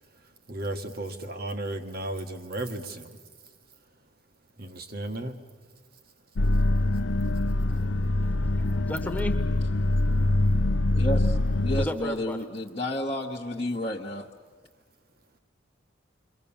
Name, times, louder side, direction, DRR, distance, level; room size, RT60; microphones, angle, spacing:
voice 1, 0.5-3.2 4.6-5.4, right 1 dB, 50° right, 7 dB, 1.6 m, -34 dB
sound 1, 6.4-11.9, left 2 dB, 70° left, 0.6 m, -24 dB
voice 2, 8.2-9.3 11.8-12.4, left 1 dB, 10° left, 5 dB, 1.3 m, -34 dB
voice 3, 10.9-14.3, left 1 dB, 30° left, -3 dB, 1.0 m, -31 dB
28.0 x 23.0 x 7.2 m, 1.5 s
head